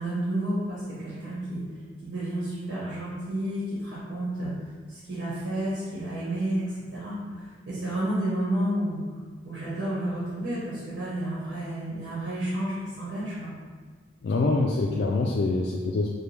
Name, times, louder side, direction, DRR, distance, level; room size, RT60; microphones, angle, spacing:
voice 1, 0.0-1.6 2.0-4.5 4.9-9.0 9.4-13.5, right 1 dB, 75° right, -10 dB, 1.2 m, -31 dB
voice 2, 14.2-16.1, left 3 dB, 65° left, -2 dB, 0.3 m, -25 dB
4.9 x 2.2 x 3.3 m, 1.5 s
head